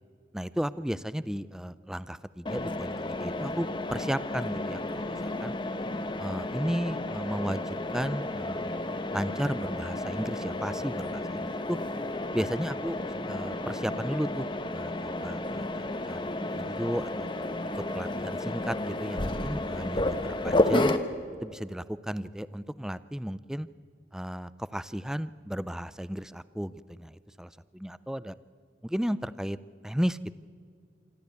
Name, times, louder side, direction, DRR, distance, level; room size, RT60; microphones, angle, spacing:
voice 1, 0.3-5.5 6.2-8.8 9.1-11.8 12.3-13.0 13.3-17.3 17.7-20.9 21.4-23.7 24.1-28.3 28.8-29.6 29.8-30.3, equal, 5° right, 16 dB, 0.4 m, -34 dB
Mechanisms, 2.4-21.0, left 1 dB, 30° left, 1.0 m, -32 dB
26.0 x 13.0 x 8.4 m, 2.3 s
head